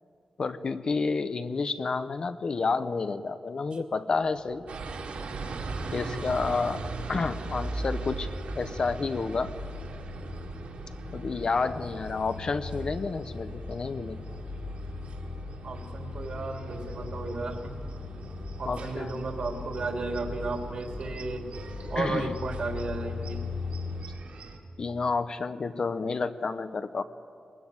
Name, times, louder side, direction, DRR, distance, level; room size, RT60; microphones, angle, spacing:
voice 1, 0.4-4.6 5.9-9.5 11.1-14.2 18.6-19.1 22.0-22.4 24.8-27.0, left 4 dB, 40° left, 11 dB, 0.8 m, -30 dB
sound 1, 4.2-24.1, left 4 dB, 70° left, 4.6 m, -40 dB
sound 2, 4.7-24.6, right 3 dB, 85° right, 3.0 m, -40 dB
voice 2, 15.6-17.8 18.6-21.5 21.9-23.4, right 3 dB, 50° right, 3 dB, 2.9 m, -34 dB
23.0 x 20.0 x 9.5 m, 2.3 s
wide cardioid pair, 175°, 2 cm